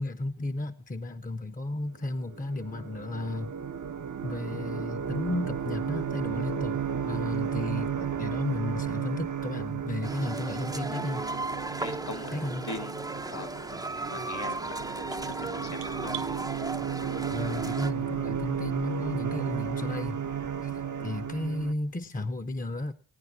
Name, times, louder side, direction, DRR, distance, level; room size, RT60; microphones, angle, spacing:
voice 1, 0.0-3.6 4.2-11.2 12.3-12.7 17.3-20.3 20.6-22.9, left 2 dB, 20° left, 0.9 m, -33 dB
sound 1, 2.3-21.7, right 8 dB, 40° right, 0.9 m, -34 dB
sound 2, 10.0-17.9, right 2 dB, 10° right, 0.7 m, -36 dB
voice 2, 11.8-12.3 12.6-13.0 13.3-13.8 14.1-16.1 21.0-21.2, left 2 dB, 55° left, 1.9 m, -41 dB
sound 3, 14.5-16.3, right 14 dB, 75° right, 0.6 m, -44 dB
17.5 x 9.2 x 5.8 m
cardioid pair, 40°, 45 cm